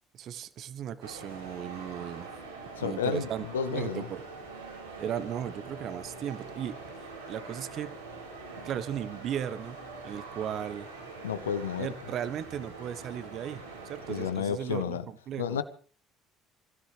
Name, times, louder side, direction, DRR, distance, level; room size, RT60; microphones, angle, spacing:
voice 1, 0.1-2.3 2.8-3.4 3.7-4.2 5.0-6.8 7.3-7.9 8.6-10.9 11.8-15.6, right 9 dB, 50° right, 1.2 m, -36 dB
sound 1, 1.0-14.3, right 3 dB, 85° right, 4.5 m, -44 dB
voice 2, 2.8-3.3 3.5-4.1 11.2-11.9 14.1-15.1 15.4-15.6, left 7 dB, 80° left, 1.1 m, -31 dB
27.0 x 16.0 x 3.4 m
figure-of-eight pair, 55°, 0 cm